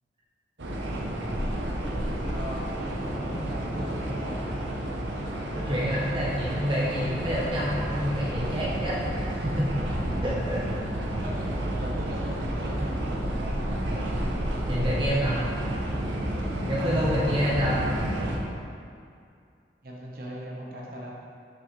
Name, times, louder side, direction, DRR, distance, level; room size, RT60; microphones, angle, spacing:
sound 1, 0.6-18.4, right 1 dB, 90° right, 0.8 m, -30 dB
voice 1, 2.2-2.7 3.0-4.4 9.7-10.2 11.2-13.6 19.8-21.1, equal, 55° right, -3 dB, 1.0 m, -39 dB
voice 2, 5.5-9.7 10.2-10.6 13.9-14.0 14.7-15.5 16.7-17.8, equal, 30° right, -7 dB, 0.8 m, -28 dB
6.3 x 5.6 x 3.1 m, 2.4 s
head